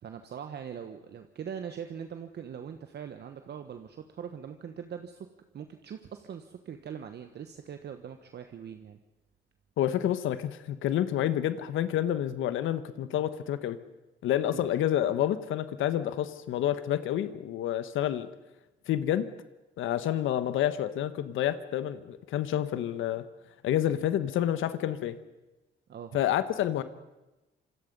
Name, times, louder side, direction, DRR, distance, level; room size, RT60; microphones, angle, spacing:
voice 1, 0.0-5.3 5.5-9.0 14.4-14.6 25.9-26.2, right 8 dB, 55° right, 7 dB, 1.3 m, -41 dB
voice 2, 9.8-13.8 14.2-18.3 18.9-19.3 19.8-23.2 23.6-25.2 26.1-26.8, left 11 dB, 80° left, 13 dB, 1.2 m, -29 dB
26.0 x 21.0 x 5.4 m, 1.0 s
cardioid pair, 90°, 20 cm